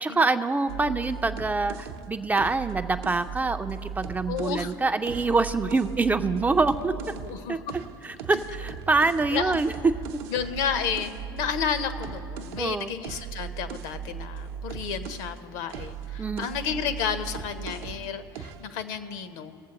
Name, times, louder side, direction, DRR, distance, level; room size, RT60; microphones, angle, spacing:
voice 1, 0.0-6.9 7.5-7.6 8.0-9.7 10.1-10.2 12.6-12.9 16.2-16.5, right 3 dB, 15° right, 8 dB, 0.4 m, -25 dB
sound 1, 0.7-4.7 5.0-7.4 7.7-15.4 15.7-18.1 18.4-18.7, right 7 dB, 65° right, 0.7 m, -38 dB
voice 2, 4.3-4.7 7.2-7.6 9.3-9.5 10.3-11.1 11.4-19.6, left 7 dB, 60° left, 11 dB, 0.8 m, -31 dB
20.5 x 7.3 x 2.9 m, 2.7 s
hypercardioid pair, 90°, 12 cm